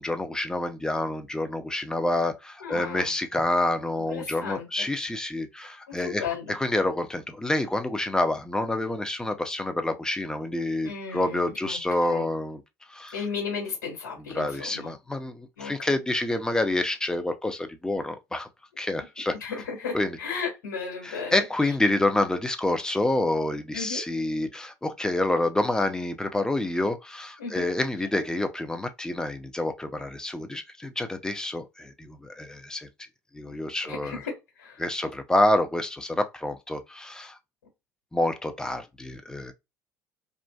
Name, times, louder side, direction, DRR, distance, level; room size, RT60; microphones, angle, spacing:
voice 1, 0.0-6.2 6.5-12.6 12.9-13.2 14.3-18.5 18.8-19.3 19.9-20.2 21.0-32.9 33.3-34.2 34.8-37.4 38.1-39.5, left 1 dB, 10° left, 0.5 m, -28 dB
voice 2, 2.6-3.1 4.1-4.9 5.9-6.5 10.8-12.3 13.1-14.9 15.6-15.9 19.4-21.4 23.7-24.0 27.4-27.6 33.8-34.8, left 5 dB, 75° left, 1.6 m, -35 dB
2.4 x 2.3 x 2.3 m
hypercardioid pair, 65°, 9 cm